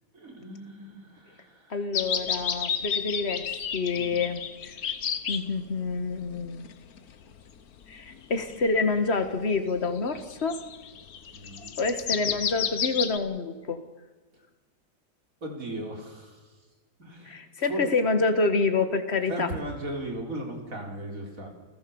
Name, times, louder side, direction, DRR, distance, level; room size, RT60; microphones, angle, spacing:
voice 1, 0.1-1.8 3.9-4.2 11.3-11.7 15.4-16.5 17.0-17.8 19.3-21.5, right 1 dB, 60° right, 2 dB, 4.4 m, -37 dB
voice 2, 1.7-3.4 3.7-4.7 5.3-6.7 7.9-10.6 11.8-13.8 17.3-19.5, left 3 dB, 45° left, 8 dB, 2.0 m, -27 dB
sound 1, 1.9-5.5 6.1-7.4 7.8-8.8 9.2-9.3 10.1-13.2, left 7 dB, 75° left, 1.6 m, -31 dB
29.0 x 16.0 x 7.2 m, 1.3 s
omnidirectional pair, 1.6 m